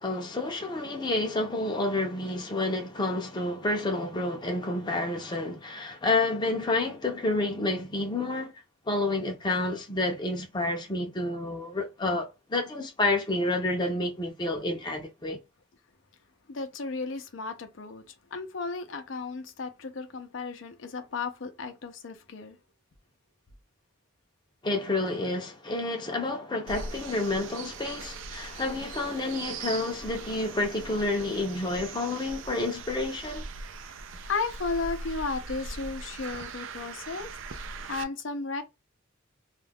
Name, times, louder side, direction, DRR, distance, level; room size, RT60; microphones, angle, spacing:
voice 1, 0.0-8.5 8.9-15.4 24.6-33.4, left 2 dB, 25° left, 0.6 m, -29 dB
voice 2, 16.5-18.0 18.3-22.6 33.9-34.0 34.3-38.6, left 4 dB, 75° left, 0.6 m, -34 dB
sound 1, 26.7-38.0, right 4 dB, 75° right, 0.4 m, -41 dB
2.4 x 2.2 x 3.4 m
head